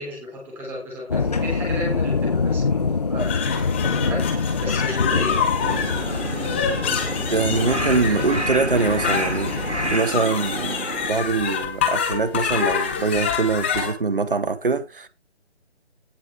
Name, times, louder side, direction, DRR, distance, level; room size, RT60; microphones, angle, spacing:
voice 1, 0.0-5.5, equal, 5° right, 3.6 m, -33 dB
sound 1, 1.1-10.0, left 4 dB, 35° left, 1.1 m, -25 dB
sound 2, 3.2-13.9, left 7 dB, 10° left, 1.2 m, -27 dB
Crow, 5.6-11.1, right 1 dB, 90° right, 1.9 m, -30 dB
voice 2, 7.3-15.1, right 4 dB, 50° right, 1.5 m, -23 dB
17.5 x 6.0 x 3.4 m
figure-of-eight pair, 155°, 33 cm